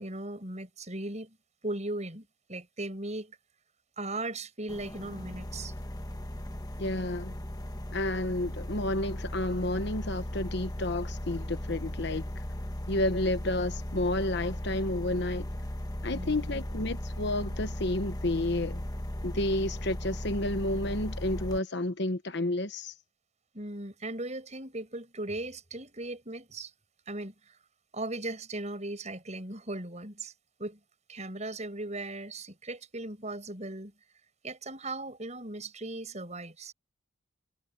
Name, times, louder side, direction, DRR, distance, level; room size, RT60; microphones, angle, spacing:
voice 1, 0.0-1.4 1.6-3.4 4.0-5.7 12.9-13.0 16.1-16.6 23.5-26.7 27.1-27.6 27.9-30.3 30.6-30.8 31.1-33.9 34.4-36.7, right 2 dB, 35° right, 7.9 m, -38 dB
sound 1, 4.7-21.6, equal, 20° left, 1.2 m, -37 dB
voice 2, 6.8-7.3 7.9-12.3 12.9-15.5 16.0-18.8 19.2-22.9, left 1 dB, 60° left, 1.1 m, -31 dB
head